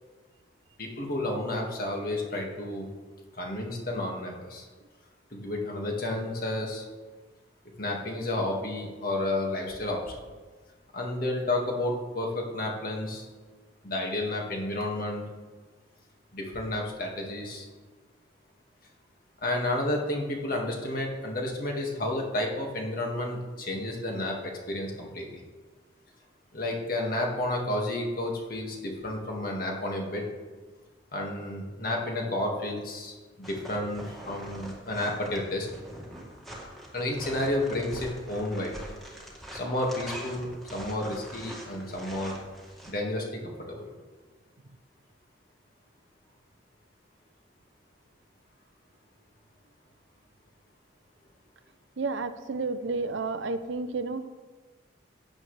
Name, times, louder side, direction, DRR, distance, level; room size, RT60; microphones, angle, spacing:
voice 1, 0.8-2.9 3.3-4.7 5.3-6.8 7.8-10.2 10.9-13.3 13.8-15.2 16.3-17.7 19.4-25.4 26.5-30.3 31.1-35.7 36.9-38.7 39.5-42.4 42.9-43.9, left 1 dB, 50° left, 0 dB, 1.9 m, -31 dB
sound 1, 33.4-42.9, equal, ahead, 2.0 m, -43 dB
voice 2, 52.0-54.3, right 3 dB, 80° right, 11 dB, 0.7 m, -31 dB
15.5 x 9.3 x 3.3 m, 1.4 s
head